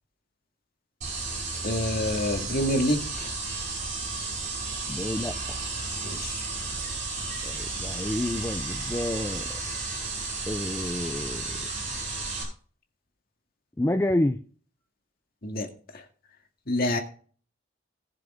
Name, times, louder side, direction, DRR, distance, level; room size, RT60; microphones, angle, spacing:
sound 1, 1.0-12.4, right 3 dB, 40° right, 5.5 m, -33 dB
voice 1, 1.6-3.3 6.0-6.4 15.4-15.7 15.9-16.0 16.7-17.0, left 1 dB, 50° left, 2.1 m, -27 dB
voice 2, 4.9-5.6 7.4-9.5 10.5-11.6 13.8-14.4, left 1 dB, 15° left, 0.5 m, -29 dB
19.5 x 6.8 x 3.6 m
head